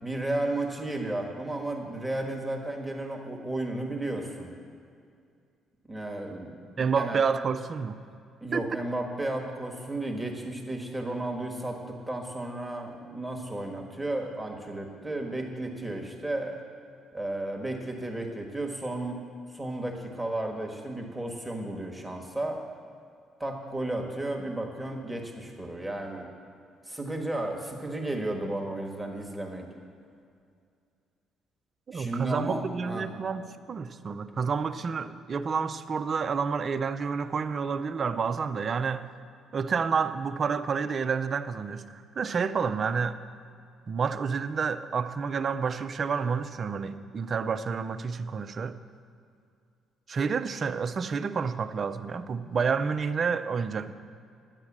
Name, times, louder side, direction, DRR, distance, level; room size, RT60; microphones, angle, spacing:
voice 1, 0.0-4.5 5.9-7.2 8.4-16.6 17.1-19.2 19.5-22.6 23.4-26.3 26.8-29.7 31.9-33.1, right 1 dB, 5° right, 0 dB, 1.4 m, -33 dB
voice 2, 6.8-8.0 8.5-8.7 31.9-39.1 39.5-43.2 43.9-48.8 50.1-53.9, right 5 dB, 40° right, 10 dB, 0.6 m, -29 dB
10.5 x 7.9 x 7.3 m, 2.3 s
cardioid pair, 90°, 0 cm